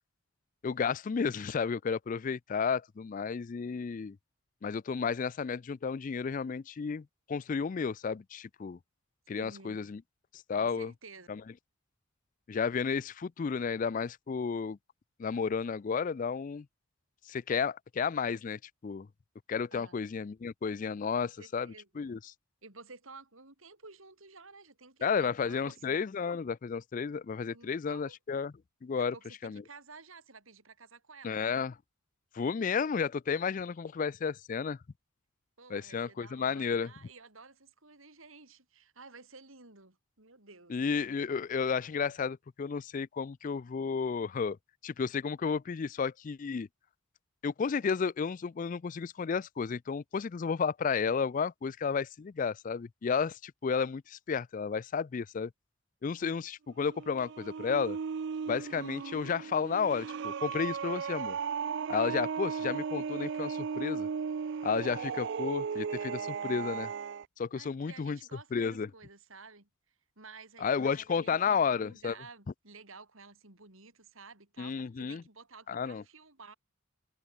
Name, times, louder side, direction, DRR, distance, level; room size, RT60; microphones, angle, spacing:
voice 1, 0.6-4.2 4.6-8.8 9.3-10.0 10.5-10.9 11.3-11.4 12.5-14.8 15.2-16.7 17.3-19.1 19.5-22.2 25.0-28.5 28.8-29.1 29.4-29.6 31.2-31.7 32.3-34.8 35.7-36.9 40.7-44.6 44.8-46.7 47.4-55.5 56.0-58.0 58.5-61.4 61.9-64.1 64.6-66.9 67.4-68.2 68.5-68.9 70.6-72.1 74.6-75.2 75.7-76.0, left 6 dB, 40° left, 0.3 m, -32 dB
voice 2, 9.4-9.9 10.5-11.3 19.7-19.9 21.2-22.0 22.6-25.8 27.5-28.2 29.0-31.5 35.6-40.8 67.5-69.7 70.2-76.5, right 4 dB, 75° right, 5.0 m, -53 dB
sound 1, 56.7-67.2, right 6 dB, 55° right, 0.4 m, -36 dB
head